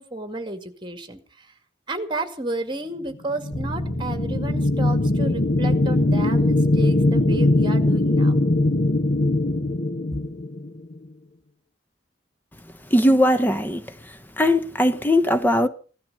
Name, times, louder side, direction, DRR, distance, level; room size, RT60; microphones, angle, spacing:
voice 1, 0.0-1.5 1.9-8.4 10.1-10.3, right 2 dB, 25° right, 2.1 m, -32 dB
sound 1, 3.3-11.0, left 2 dB, 60° left, 1.1 m, -21 dB
Bass guitar, 3.5-9.8, equal, 25° left, 3.5 m, -36 dB
voice 2, 12.9-13.8 14.4-15.7, left 1 dB, 10° left, 0.8 m, -19 dB
16.5 x 12.5 x 6.7 m
head